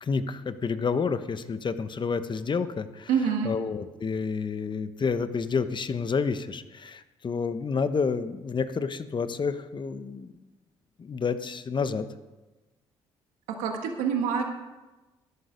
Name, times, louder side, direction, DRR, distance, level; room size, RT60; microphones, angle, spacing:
voice 1, 0.0-3.1 3.4-10.3 11.0-12.1, left 5 dB, 40° left, 11 dB, 1.0 m, -29 dB
voice 2, 3.1-3.5 13.5-14.4, right 7 dB, 85° right, 3 dB, 1.5 m, -26 dB
14.0 x 11.5 x 5.2 m, 1.1 s
supercardioid pair, 60°, 12 cm